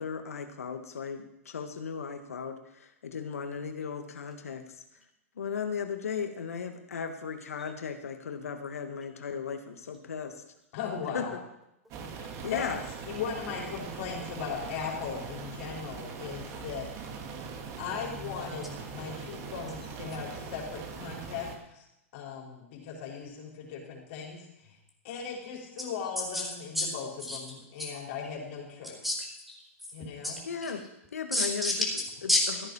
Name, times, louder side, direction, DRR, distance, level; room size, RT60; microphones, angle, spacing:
voice 1, 0.0-4.8 5.4-10.4 11.1-11.2 12.4-12.8 30.5-30.8 31.1-31.7, left 6 dB, 80° left, 7 dB, 1.6 m, -36 dB
voice 2, 10.7-11.3 12.1-12.7 13.1-16.9 17.8-21.8 22.1-24.7 25.0-29.0 29.9-30.4, left 6 dB, 55° left, -2 dB, 4.7 m, -38 dB
sound 1, 11.9-21.5, right 5 dB, 40° right, 2.3 m, -41 dB
voice 3, 26.2-26.5 26.7-26.9 27.2-27.4 27.8-28.0 29.0-29.9 30.2-30.9 31.3-31.9 32.3-32.6, left 1 dB, ahead, 0 dB, 4.7 m, -30 dB
14.5 x 9.5 x 5.6 m, 0.84 s
hypercardioid pair, 115°, 8 cm